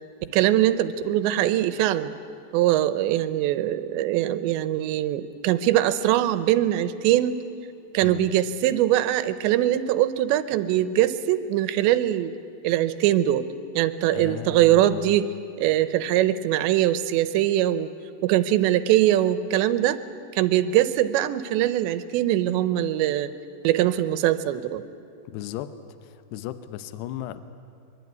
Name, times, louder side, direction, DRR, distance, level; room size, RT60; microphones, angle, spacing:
voice 1, 0.2-2.1 2.5-7.4 7.9-12.3 12.6-13.5 13.8-18.0 18.2-20.0 20.3-23.3 23.6-24.8, right 13 dB, 80° right, 13 dB, 3.0 m, -22 dB
voice 2, 14.1-15.2 25.3-25.7 26.0-27.4, left 12 dB, 75° left, 12 dB, 2.8 m, -35 dB
24.0 x 23.0 x 9.4 m, 2.6 s
omnidirectional pair, 5.2 m